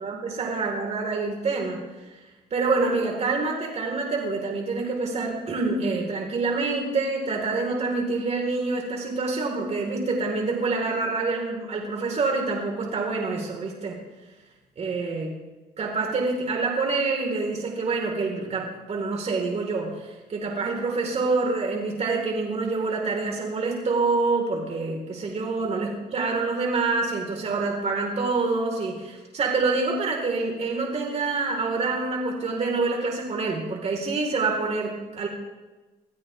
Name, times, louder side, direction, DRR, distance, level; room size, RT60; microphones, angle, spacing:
voice 1, 0.0-1.8 2.5-14.0 14.8-15.4 15.8-35.3, right 3 dB, 40° right, 0 dB, 4.5 m, -26 dB
25.0 x 16.0 x 3.6 m, 1.2 s
cardioid pair, 110°, 17 cm